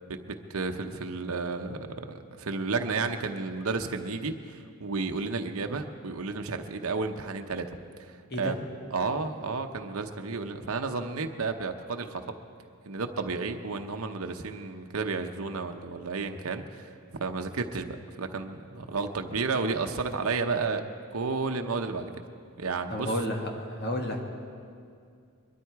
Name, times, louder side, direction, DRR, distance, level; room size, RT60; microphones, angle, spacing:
voice 1, 0.1-7.7 8.0-8.6 8.9-12.3 12.9-16.9 17.2-17.9 18.2-20.8 21.1-22.1 22.6-23.1, right 4 dB, 80° right, 5 dB, 0.8 m, -32 dB
voice 2, 22.9-24.2, equal, 50° left, 1 dB, 1.8 m, -31 dB
22.5 x 12.5 x 4.7 m, 2.3 s
head